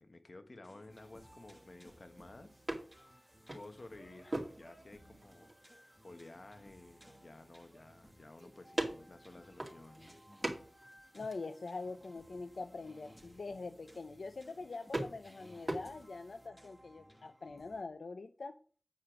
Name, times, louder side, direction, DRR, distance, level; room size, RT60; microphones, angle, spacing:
voice 1, 0.0-2.7 2.9-10.2, left 2 dB, 55° left, 7 dB, 1.3 m, -54 dB
sound 1, 0.6-17.8, equal, ahead, 1.8 m, -60 dB
sound 2, 0.9-16.5, right 1 dB, 30° right, 2.4 m, -45 dB
voice 2, 11.1-18.6, left 3 dB, 85° left, 9 dB, 0.5 m, -44 dB
8.5 x 5.1 x 5.9 m, 0.41 s
wide cardioid pair, 55°, 0 cm